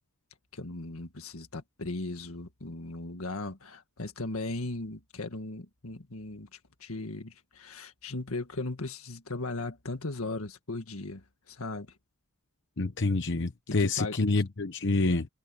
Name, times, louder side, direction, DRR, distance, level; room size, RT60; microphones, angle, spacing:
voice 1, 0.5-11.9 13.7-14.2, left 2 dB, 80° left, 1.8 m, -37 dB
voice 2, 12.8-15.3, left 3 dB, 60° left, 1.0 m, -27 dB
head